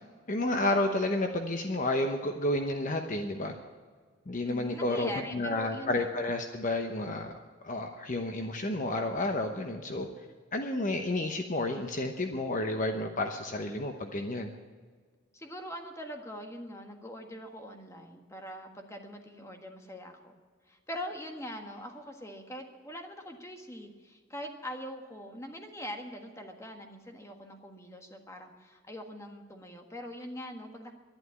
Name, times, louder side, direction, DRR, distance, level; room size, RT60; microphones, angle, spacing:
voice 1, 0.3-3.5 4.3-7.3 7.6-10.1 10.5-14.5, left 1 dB, 45° left, 5 dB, 0.9 m, -31 dB
voice 2, 4.4-6.1 15.3-20.3 20.7-30.9, equal, 15° left, 3 dB, 1.6 m, -42 dB
11.5 x 11.5 x 9.5 m, 1.5 s
head